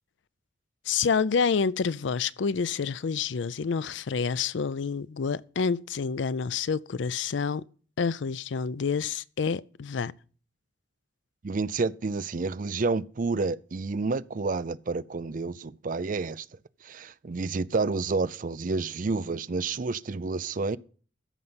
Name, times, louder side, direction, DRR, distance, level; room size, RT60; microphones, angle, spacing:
voice 1, 0.9-7.6 8.0-10.1, left 5 dB, 75° left, 0.5 m, -28 dB
voice 2, 11.4-16.5 16.8-20.8, right 3 dB, 45° right, 0.5 m, -29 dB
14.0 x 5.4 x 7.8 m
head